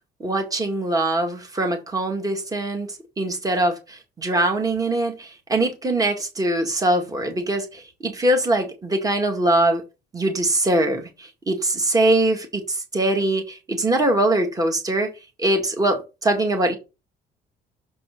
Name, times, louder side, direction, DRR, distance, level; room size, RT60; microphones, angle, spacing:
voice 1, 0.2-2.9 3.2-9.8 10.1-15.1 15.4-16.8, right 1 dB, 20° right, 1.8 m, -22 dB
6.8 x 4.1 x 5.1 m
cardioid pair, 110°, 17 cm